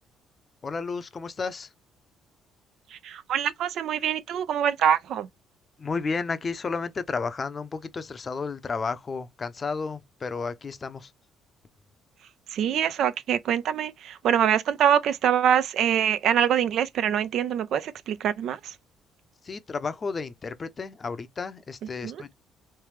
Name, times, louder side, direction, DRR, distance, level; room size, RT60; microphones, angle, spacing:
voice 1, 0.6-1.7 5.8-11.1 19.4-22.3, left 4 dB, 35° left, 0.6 m, -32 dB
voice 2, 2.9-5.3 12.5-18.7 22.0-22.2, right 9 dB, 65° right, 0.4 m, -24 dB
3.3 x 3.2 x 3.2 m
cardioid pair, 95°, 0 cm